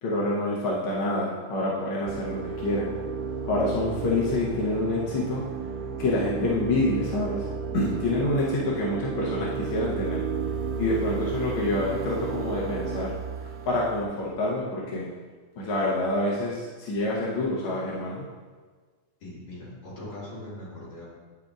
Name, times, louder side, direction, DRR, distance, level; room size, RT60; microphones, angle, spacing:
voice 1, 0.0-2.9 3.4-5.5 6.0-7.5 7.7-10.2 10.8-13.1 13.7-15.1 15.6-18.3, left 2 dB, 70° left, -5 dB, 1.2 m, -27 dB
sound 1, 2.1-14.0, right 5 dB, 90° right, 1.4 m, -33 dB
voice 2, 19.2-21.0, left 1 dB, 40° left, -8 dB, 2.5 m, -40 dB
9.2 x 5.1 x 2.4 m, 1.4 s
omnidirectional pair, 3.4 m